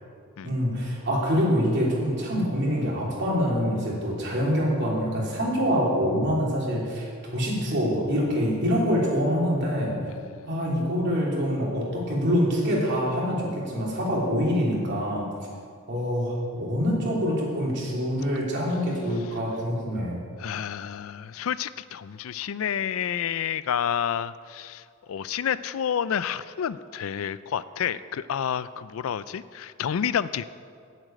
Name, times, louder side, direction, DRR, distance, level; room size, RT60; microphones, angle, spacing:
voice 1, 0.4-9.9 10.5-15.3 15.9-20.2, equal, 55° right, -4 dB, 3.1 m, -25 dB
voice 2, 10.1-10.5 15.5-15.6 20.4-30.4, left 8 dB, 75° left, 16 dB, 0.4 m, -29 dB
8.1 x 7.6 x 8.7 m, 2.3 s
head